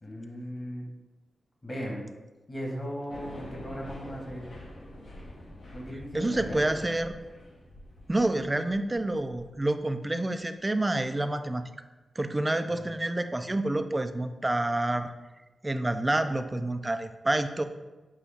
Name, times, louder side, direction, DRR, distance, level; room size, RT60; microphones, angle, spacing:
voice 1, 0.0-0.8 1.6-2.1 2.5-4.5 5.7-6.7 12.6-13.0, equal, 30° left, -1 dB, 1.3 m, -37 dB
sound 1, 3.1-9.7, left 1 dB, 70° left, 0.9 m, -46 dB
voice 2, 6.1-7.1 8.1-11.7 12.2-15.1 15.6-17.6, right 1 dB, 20° right, 9 dB, 0.3 m, -28 dB
5.9 x 2.3 x 3.4 m, 1.1 s
cardioid pair, 65°, 0 cm